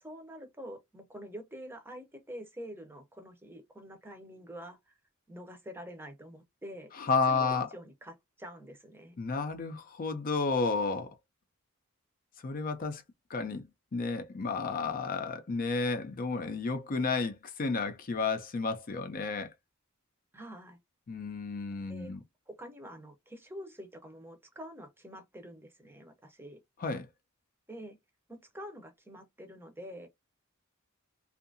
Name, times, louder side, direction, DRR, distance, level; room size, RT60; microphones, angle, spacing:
voice 1, 0.0-5.0 5.3-6.9 7.3-9.2 20.3-20.8 21.9-22.2 22.5-26.6 27.7-28.0 28.3-30.1, equal, 10° right, 0.7 m, -46 dB
voice 2, 7.1-7.7 9.2-11.1 12.4-13.0 13.3-13.6 13.9-19.5 21.1-22.2 26.8-27.1, left 4 dB, 40° left, 0.5 m, -31 dB
2.7 x 2.4 x 2.5 m
head